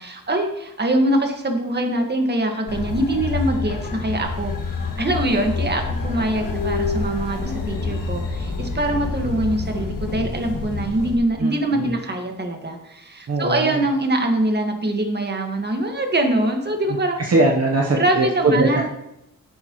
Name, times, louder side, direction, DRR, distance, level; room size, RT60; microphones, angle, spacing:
voice 1, 0.0-17.2 17.9-18.8, right 1 dB, 30° right, 3 dB, 1.7 m, -23 dB
sound 1, 2.7-11.2, left 4 dB, 90° left, 2.0 m, -27 dB
voice 2, 11.4-12.0 13.3-13.9 16.9-18.8, right 2 dB, 50° right, 0 dB, 1.1 m, -21 dB
11.0 x 11.0 x 3.1 m, 0.85 s
wide cardioid pair, 130°, 32 cm